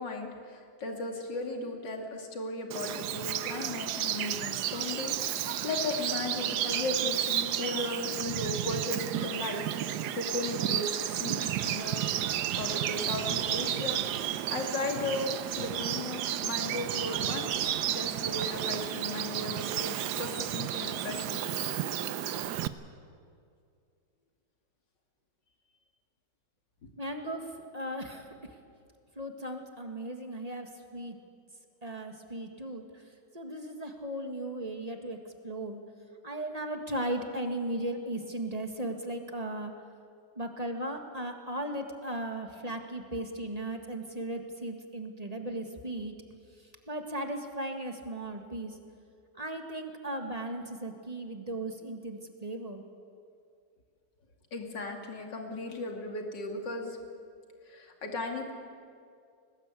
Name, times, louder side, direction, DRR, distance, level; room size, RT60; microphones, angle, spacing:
voice 1, 0.0-12.0 12.5-17.5 17.9-21.4 54.5-57.0 57.6-58.5, left 2 dB, 80° left, 2 dB, 3.1 m, -36 dB
Bird vocalization bird call bird song, 2.7-22.7, right 11 dB, 70° right, 1.3 m, -32 dB
voice 2, 27.0-28.5 29.1-31.2 31.8-35.8 36.2-39.7 40.3-46.1 46.6-48.8 49.3-52.8, right 1 dB, 20° right, 4 dB, 1.9 m, -37 dB
22.0 x 19.5 x 8.4 m, 2.3 s
omnidirectional pair, 1.9 m